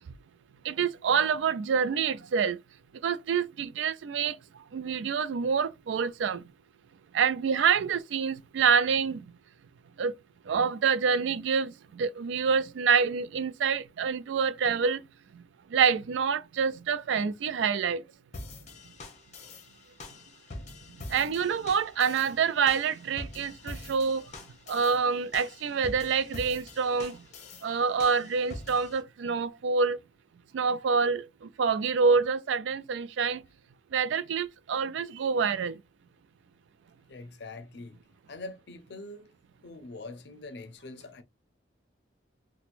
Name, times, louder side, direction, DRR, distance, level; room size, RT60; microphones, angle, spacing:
voice 1, 0.6-2.6 3.0-4.4 4.7-6.5 7.1-9.2 10.0-10.1 10.5-15.0 15.3-15.4 15.7-18.0 21.1-24.3 24.7-27.2 27.6-30.0 30.5-33.4 33.9-35.8, right 6 dB, 85° right, 0.3 m, -27 dB
sound 1, 18.3-29.0, left 2 dB, 40° left, 0.8 m, -45 dB
voice 2, 37.1-38.0 38.3-39.3 39.6-41.2, left 2 dB, 70° left, 0.5 m, -43 dB
4.3 x 2.1 x 2.5 m
head